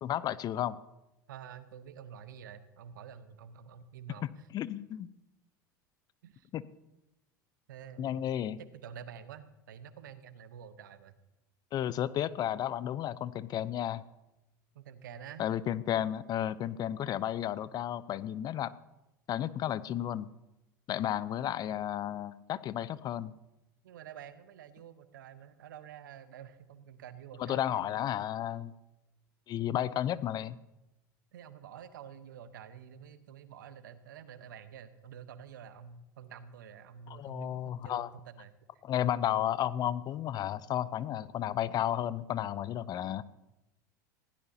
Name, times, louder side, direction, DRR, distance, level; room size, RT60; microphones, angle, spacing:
voice 1, 0.0-0.8 4.2-5.1 6.5-6.6 8.0-8.6 11.7-14.0 15.4-18.7 19.3-20.3 20.9-23.3 27.4-28.7 29.5-30.6 37.1-38.1 38.8-43.2, left 11 dB, 40° left, 17 dB, 0.7 m, -33 dB
voice 2, 1.3-4.5 6.2-6.5 7.7-8.2 8.8-11.2 14.7-15.4 23.8-27.8 31.3-38.5, right 8 dB, 70° right, 12 dB, 1.1 m, -49 dB
20.5 x 16.0 x 2.9 m, 0.95 s
figure-of-eight pair, 80°, 11 cm